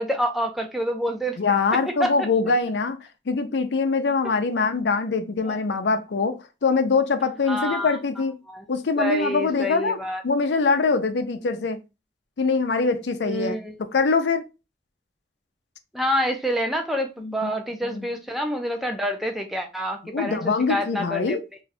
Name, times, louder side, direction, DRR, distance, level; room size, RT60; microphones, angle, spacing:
voice 1, 0.0-1.4 2.0-2.1 7.5-8.0 8.5-8.6 9.0-10.2 13.2-13.7 15.9-20.4 20.7-21.4, equal, ahead, 0.5 m, -27 dB
voice 2, 1.4-3.0 3.3-8.4 8.7-11.8 12.4-14.5 17.2-17.5 17.9-18.1 20.1-21.4, left 4 dB, 80° left, 0.5 m, -23 dB
2.6 x 2.3 x 4.0 m
head